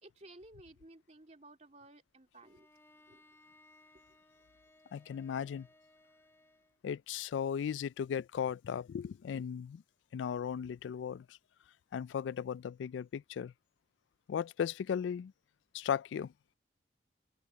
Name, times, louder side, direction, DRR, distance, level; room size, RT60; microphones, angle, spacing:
voice 1, 0.0-2.7 3.1-3.2, right 2 dB, 40° right, 2.9 m, -56 dB
Bowed string instrument, 2.4-6.8, left 1 dB, 15° left, 6.3 m, -64 dB
voice 2, 4.9-5.7 6.8-9.8 10.1-11.4 11.9-13.5 14.3-15.3 15.7-16.3, left 7 dB, 85° left, 0.3 m, -36 dB
head